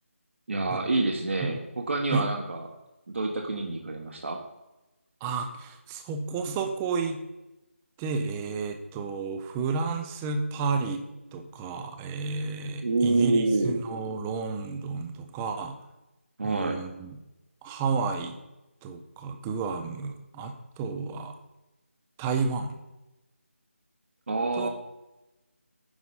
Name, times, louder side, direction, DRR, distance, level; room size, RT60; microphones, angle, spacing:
voice 1, 0.5-2.7 3.1-4.4 12.8-13.8 16.4-16.8 24.3-24.7, right 2 dB, 60° right, 1 dB, 1.4 m, -27 dB
voice 2, 5.2-7.2 8.0-11.0 11.3-15.8 16.4-17.2 17.6-18.4 18.8-21.3 22.2-22.7 24.6-24.7, right 4 dB, 5° right, 6 dB, 0.4 m, -31 dB
9.5 x 5.0 x 5.6 m, 0.99 s
figure-of-eight pair, 165°, 7 cm